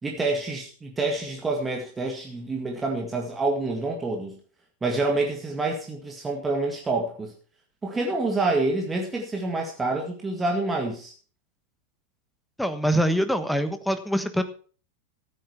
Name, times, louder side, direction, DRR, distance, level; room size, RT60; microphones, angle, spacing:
voice 1, 0.0-4.4 4.8-7.3 7.8-11.1, right 2 dB, 15° right, 1 dB, 2.0 m, -27 dB
voice 2, 12.6-14.4, equal, ahead, 9 dB, 1.3 m, -24 dB
14.0 x 9.1 x 4.8 m, 0.41 s
figure-of-eight pair, 90°, 0 cm